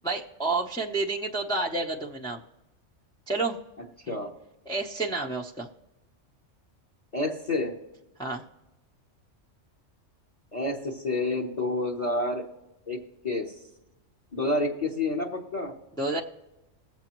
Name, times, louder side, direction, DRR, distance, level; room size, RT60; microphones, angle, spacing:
voice 1, 0.0-2.4 3.3-3.6 4.1-4.2 4.7-5.7 8.2-8.4 16.0-16.2, right 3 dB, 5° left, 0 dB, 0.6 m, -29 dB
voice 2, 7.1-7.7 10.5-12.5 12.9-13.0 13.2-13.6 14.3-15.7, left 2 dB, 35° left, 0 dB, 1.1 m, -29 dB
20.5 x 7.5 x 3.0 m, 0.99 s
omnidirectional pair, 1.3 m